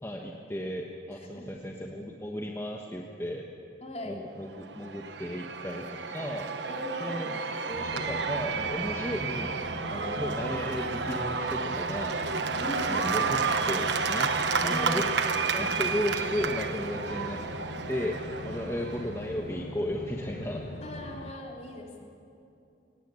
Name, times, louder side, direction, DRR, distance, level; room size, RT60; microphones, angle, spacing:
voice 1, 0.0-3.4 4.0-6.5 7.0-7.4 7.7-9.6 9.9-12.6 12.9-15.0 15.5-17.4 17.9-20.7, equal, 15° left, 1 dB, 1.3 m, -35 dB
voice 2, 1.2-1.5 3.8-4.2 6.7-7.3 9.9-10.1 12.6-13.1 14.6-15.2 18.5-18.6 20.8-22.0, equal, 35° left, 0 dB, 3.4 m, -38 dB
Cheering / Applause / Crowd, 4.6-19.3, right 5 dB, 80° right, 1.2 m, -31 dB
sound 1, 7.7-21.3, left 1 dB, 65° left, 1.5 m, -42 dB
23.0 x 19.0 x 8.4 m, 2.7 s
head